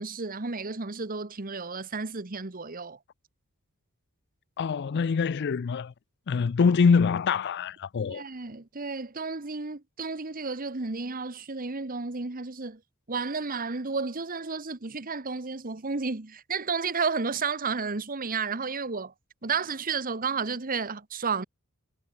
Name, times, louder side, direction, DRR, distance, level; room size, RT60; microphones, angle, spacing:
voice 1, 0.0-3.0 8.1-12.8 13.1-19.1 19.4-21.4, right 4 dB, 40° right, 1.2 m, -32 dB
voice 2, 4.6-5.9 6.3-8.2, left 5 dB, 50° left, 0.4 m, -24 dB
head